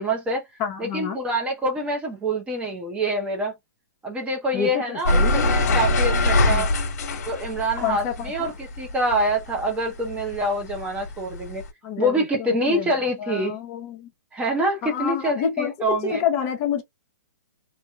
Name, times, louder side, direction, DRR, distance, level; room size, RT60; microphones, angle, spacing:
voice 1, 0.0-0.4 0.8-3.5 4.0-6.7 7.2-11.6 12.0-13.6 14.3-16.2, right 1 dB, 10° right, 0.8 m, -26 dB
voice 2, 0.6-1.2 4.5-5.8 6.5-6.7 7.8-8.5 11.8-12.9 13.2-14.1 14.9-16.8, left 7 dB, 30° left, 0.9 m, -28 dB
sound 1, 5.0-9.7 10.0-11.7, left 2 dB, 60° left, 1.2 m, -22 dB
3.0 x 2.7 x 2.3 m
hypercardioid pair, 145°, 9 cm